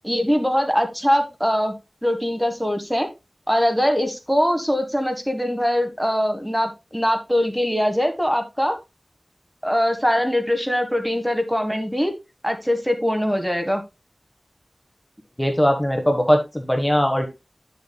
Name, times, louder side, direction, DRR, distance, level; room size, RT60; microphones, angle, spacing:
voice 1, 0.0-1.8 2.0-3.1 3.5-8.7 9.6-12.1 12.4-13.8, equal, ahead, 5 dB, 1.4 m, -22 dB
voice 2, 15.4-17.3, equal, 15° left, 5 dB, 1.3 m, -20 dB
9.5 x 6.9 x 2.2 m, 0.25 s
wide cardioid pair, 50°, 0 cm